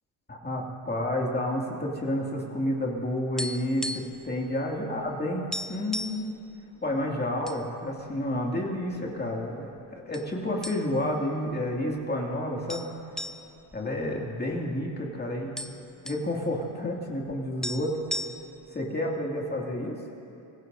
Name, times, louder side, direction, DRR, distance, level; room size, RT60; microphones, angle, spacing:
voice 1, 0.3-3.9 4.2-5.4 5.7-6.3 6.8-12.9 13.7-15.6 16.0-18.0 18.7-20.0, left 1 dB, 20° left, -2 dB, 2.3 m, -30 dB
sound 1, 3.0-4.3 4.5-4.7 5.1-5.2 5.5-6.3 6.9-7.6 8.0-8.1 8.8-9.4 10.1-10.3 10.6-11.2 11.5-11.6 12.7-14.8 15.1-15.2 15.3-16.3 17.3-17.4 17.6-18.7, equal, ahead, 0.5 m, -36 dB
24.5 x 15.5 x 2.7 m, 2.8 s
supercardioid pair, 85°, 47 cm